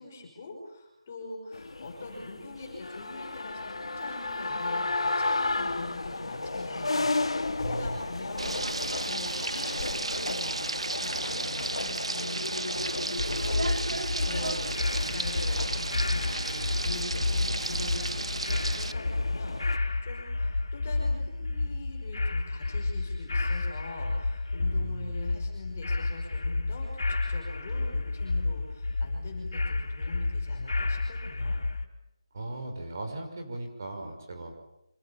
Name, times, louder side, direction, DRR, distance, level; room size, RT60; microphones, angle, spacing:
voice 1, 0.0-14.7 15.0-31.6, left 2 dB, 20° left, 1 dB, 5.4 m, -43 dB
sound 1, 1.5-19.8, left 2 dB, 90° left, 2.0 m, -34 dB
voice 2, 7.6-8.2 24.6-25.2 32.3-34.6, right 2 dB, 35° right, 4 dB, 5.6 m, -38 dB
Frying (food), 8.4-18.9, right 3 dB, 85° right, 1.3 m, -33 dB
sound 2, 13.2-31.8, left 3 dB, 65° left, 4.3 m, -31 dB
27.0 x 26.0 x 7.2 m, 0.84 s
figure-of-eight pair, 180°, 3 cm